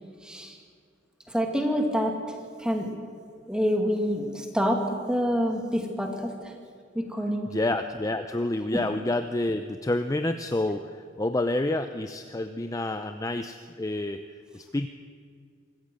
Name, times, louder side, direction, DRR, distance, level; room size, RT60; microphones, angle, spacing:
voice 1, 0.2-0.5 1.3-2.2 2.6-2.9 3.5-6.3 7.0-7.5, equal, 5° right, 3 dB, 2.3 m, -27 dB
voice 2, 7.5-14.2 14.5-14.9, left 2 dB, 20° left, 8 dB, 0.6 m, -28 dB
24.0 x 14.0 x 7.8 m, 2.2 s
head